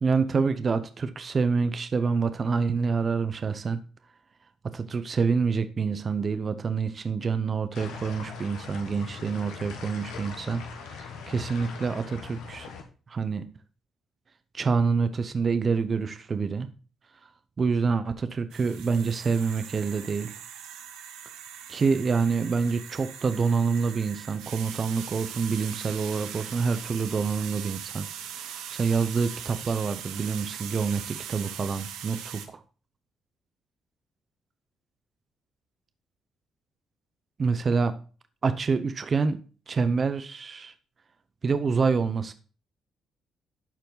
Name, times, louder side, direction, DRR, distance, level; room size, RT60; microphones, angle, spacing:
voice 1, 0.0-3.8 4.7-12.7 13.1-13.4 14.5-16.7 17.6-20.3 21.7-28.1 28.4-32.6 37.4-37.9 38.4-39.4 39.7-40.7 41.4-42.3, right 5 dB, 45° right, 11 dB, 0.8 m, -27 dB
sound 1, 7.7-12.8, left 5 dB, 80° left, 1.4 m, -41 dB
sound 2, 18.5-32.5, right 9 dB, 80° right, 0.9 m, -40 dB
12.0 x 4.5 x 3.9 m, 0.38 s
supercardioid pair, 55°, 0 cm